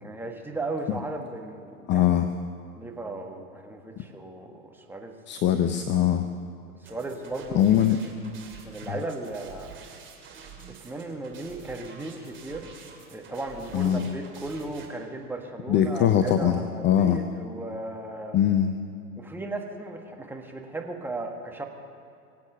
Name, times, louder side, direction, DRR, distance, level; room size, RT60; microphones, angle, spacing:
voice 1, 0.0-2.0 2.8-5.1 6.8-7.7 8.6-9.7 10.8-12.7 13.1-18.4 19.2-21.7, right 2 dB, 5° right, 1 dB, 1.6 m, -36 dB
voice 2, 1.9-2.3 5.3-6.2 7.5-8.0 8.9-9.0 13.7-14.1 15.7-17.2 18.3-18.7, left 10 dB, 25° left, 8 dB, 0.6 m, -22 dB
sound 1, 6.8-14.9, right 6 dB, 25° right, 2.8 m, -47 dB
23.5 x 8.4 x 6.8 m, 2.6 s
hypercardioid pair, 100°, 45 cm